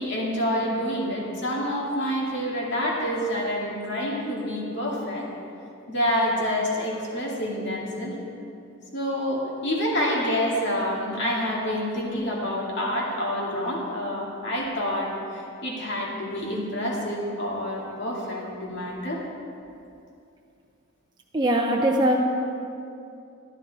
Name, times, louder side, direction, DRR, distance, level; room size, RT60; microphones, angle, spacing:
voice 1, 0.0-5.3 5.9-8.2 8.9-19.2, equal, 55° left, -3 dB, 2.3 m, -27 dB
voice 2, 21.3-22.2, right 1 dB, 20° right, -1 dB, 0.6 m, -21 dB
13.0 x 10.5 x 4.1 m, 2.6 s
head